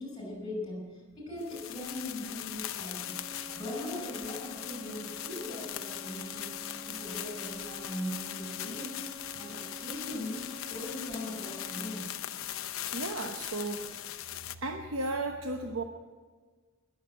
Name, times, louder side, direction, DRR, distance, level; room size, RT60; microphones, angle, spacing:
voice 1, 0.0-3.2 3.5-9.0 9.4-12.1, left 1 dB, 20° left, 1 dB, 5.7 m, -40 dB
sound 1, 1.4-14.6, left 12 dB, 85° left, 0.6 m, -40 dB
sound 2, 3.0-12.0, right 2 dB, 15° right, 5.6 m, -48 dB
voice 2, 12.9-14.2 14.6-15.8, right 2 dB, 70° right, 4 dB, 1.0 m, -35 dB
20.5 x 7.2 x 7.8 m, 1.4 s
head